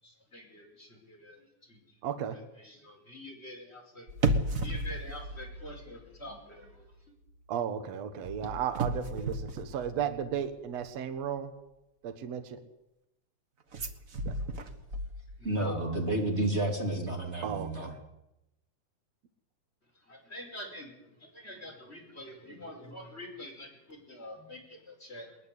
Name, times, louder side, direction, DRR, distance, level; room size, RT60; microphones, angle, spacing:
voice 1, 0.0-2.0 2.3-4.1 4.5-7.1 15.4-15.9 19.9-25.4, left 1 dB, 20° left, 1 dB, 5.3 m, -46 dB
voice 2, 2.0-2.4 7.5-11.5 12.0-12.6 14.2-14.3 17.4-18.0, right 8 dB, 60° right, 8 dB, 2.6 m, -34 dB
sound 1, 4.1-6.4 6.6-6.9 8.2-10.5 13.7-15.6 15.9-16.0, right 2 dB, 45° right, 1.1 m, -34 dB
voice 3, 15.4-17.9, right 1 dB, 20° right, 2 dB, 3.3 m, -30 dB
21.0 x 20.5 x 8.4 m, 0.89 s
omnidirectional pair, 3.5 m